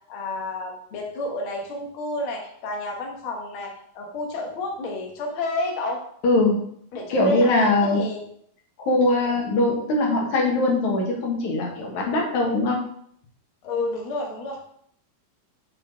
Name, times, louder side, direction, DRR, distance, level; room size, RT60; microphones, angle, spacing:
voice 1, 0.1-6.0 6.9-7.5 7.9-8.2 9.2-9.4 13.6-14.6, left 2 dB, 55° left, 0 dB, 1.8 m, -30 dB
voice 2, 6.2-6.6 7.1-8.0 8.8-12.8, left 2 dB, 80° left, -1 dB, 2.8 m, -21 dB
6.5 x 4.5 x 5.1 m, 0.65 s
omnidirectional pair, 3.3 m